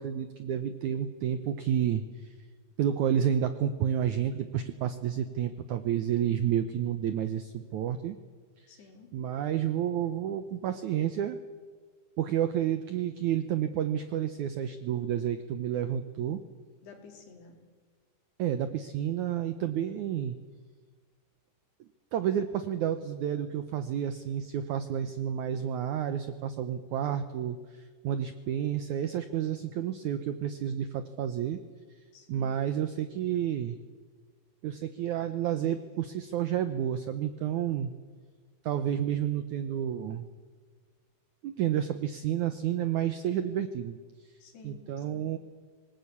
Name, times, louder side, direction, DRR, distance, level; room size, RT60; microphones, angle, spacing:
voice 1, 0.0-2.3 2.8-8.2 8.6-8.7 9.1-11.4 12.2-16.4 18.4-20.4 21.8-31.6 32.3-33.8 34.6-37.9 38.6-40.3 41.4-44.0 44.6-45.4, right 10 dB, 80° right, 10 dB, 1.7 m, -30 dB
voice 2, 8.7-9.1 16.8-17.6 32.1-32.6 44.4-45.3, left 4 dB, 80° left, 3 dB, 5.3 m, -52 dB
25.0 x 19.5 x 8.4 m, 1.5 s
omnidirectional pair, 4.6 m